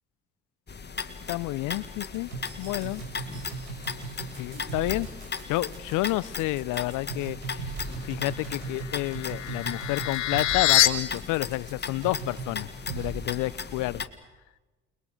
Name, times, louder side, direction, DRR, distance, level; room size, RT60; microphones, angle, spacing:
sound 1, 0.7-14.1, left 5 dB, 30° left, 2.0 m, -37 dB
voice 1, 1.3-2.3 2.6-3.0 4.3-5.1 5.5-7.6 8.0-14.1, left 19 dB, 65° left, 22 dB, 0.7 m, -30 dB
sound 2, 2.1-12.5 12.9-13.1, right 5 dB, 90° right, 5.7 m, -38 dB
sound 3, 8.6-10.9, left 15 dB, 85° left, 1.2 m, -25 dB
29.5 x 21.5 x 6.6 m, 1.1 s
hypercardioid pair, 50°, 33 cm